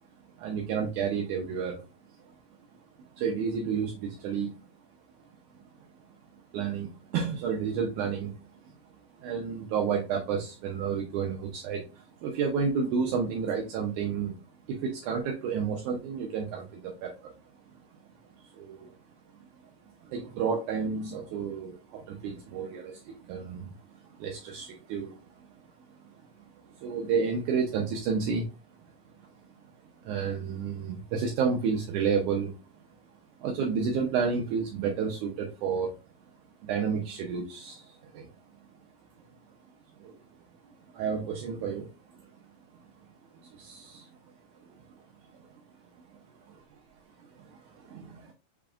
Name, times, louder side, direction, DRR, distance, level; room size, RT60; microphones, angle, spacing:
voice 1, 0.4-1.8 2.2-2.3 3.1-4.5 6.5-8.7 9.2-14.4 14.7-17.3 18.4-18.9 19.6-19.7 20.0-25.5 26.1-26.2 26.7-28.6 29.2-29.3 30.0-32.6 33.4-35.9 36.6-38.3 40.0-40.2 40.9-41.9 42.2-42.3 43.4-44.1 44.7-44.8 46.1-46.2 46.5-46.6 47.2-48.3, right 6 dB, 85° right, 0 dB, 1.7 m, -31 dB
5.8 x 3.5 x 2.4 m, 0.29 s
omnidirectional pair, 4.4 m